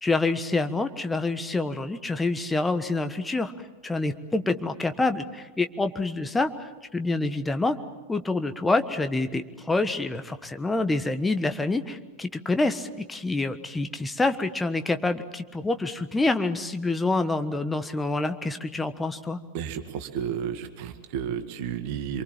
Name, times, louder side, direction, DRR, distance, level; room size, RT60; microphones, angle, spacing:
voice 1, 0.0-3.5 3.8-7.8 8.1-19.4, left 2 dB, 10° left, 9 dB, 1.3 m, -27 dB
voice 2, 19.5-22.2, right 8 dB, 45° right, 7 dB, 2.0 m, -32 dB
27.0 x 23.5 x 7.4 m, 1.3 s
figure-of-eight pair, 90°, 0 cm